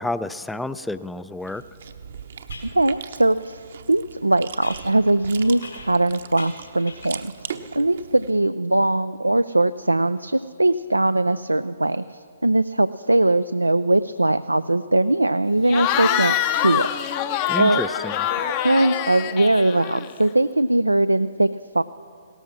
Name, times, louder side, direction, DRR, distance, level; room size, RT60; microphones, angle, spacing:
voice 1, 0.0-1.6 17.5-18.3, left 2 dB, 5° left, 15 dB, 0.4 m, -30 dB
Chewing mastication, 1.4-8.3, right 7 dB, 55° right, 0.9 m, -39 dB
sound 1, 1.5-1.6 2.5-2.8 4.6-6.1 6.4-7.3, left 3 dB, 70° left, 3.6 m, -42 dB
voice 2, 2.7-3.6 3.9-7.5 7.7-16.9 17.6-17.8 18.6-21.5 21.7-21.8, right 2 dB, 85° right, 14 dB, 0.3 m, -20 dB
Cheering / Crowd, 15.7-20.3, left 11 dB, 30° left, 0.7 m, -25 dB
17.0 x 13.5 x 6.1 m, 2.5 s
figure-of-eight pair, 125°, 0 cm